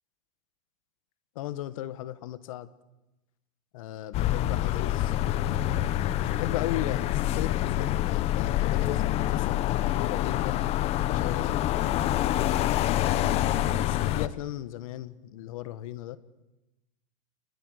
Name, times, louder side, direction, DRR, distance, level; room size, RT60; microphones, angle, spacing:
voice 1, 1.4-2.7 3.7-10.6 11.1-11.6 13.5-16.2, left 14 dB, 75° left, 15 dB, 1.8 m, -37 dB
sound 1, 4.1-14.3, left 13 dB, 35° left, 1.1 m, -26 dB
29.0 x 22.0 x 6.8 m, 0.98 s
supercardioid pair, 155°, 17 cm